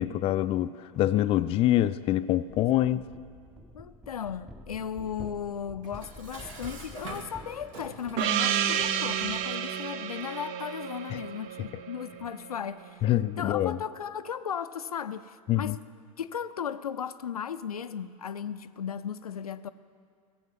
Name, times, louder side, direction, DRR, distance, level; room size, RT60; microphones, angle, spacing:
voice 1, 0.0-3.1 11.1-11.2 11.6-11.7 13.0-13.8 15.5-15.8, left 13 dB, 30° left, 13 dB, 0.4 m, -25 dB
sound 1, 2.5-9.5, equal, ahead, 0.7 m, -49 dB
voice 2, 3.7-13.1 13.4-15.8 16.2-19.7, left 8 dB, 85° left, 12 dB, 0.5 m, -36 dB
Dishes pots and pans, 5.8-8.3, right 3 dB, 65° right, 1.9 m, -44 dB
Gong, 8.2-12.5, right 9 dB, 50° right, 0.7 m, -30 dB
15.5 x 7.8 x 7.4 m, 2.2 s
hypercardioid pair, 90°, 19 cm